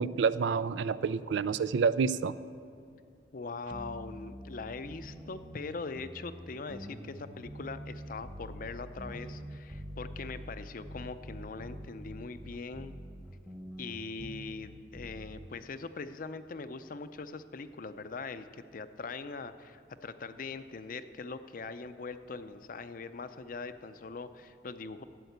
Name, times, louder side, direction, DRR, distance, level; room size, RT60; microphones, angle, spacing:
voice 1, 0.0-2.3, right 5 dB, 80° right, 16 dB, 0.4 m, -28 dB
voice 2, 3.3-12.9 13.8-25.0, left 4 dB, 50° left, 11 dB, 0.5 m, -42 dB
sound 1, 3.7-15.5, equal, 15° right, 1.0 m, -45 dB
12.5 x 8.2 x 8.0 m, 2.3 s
head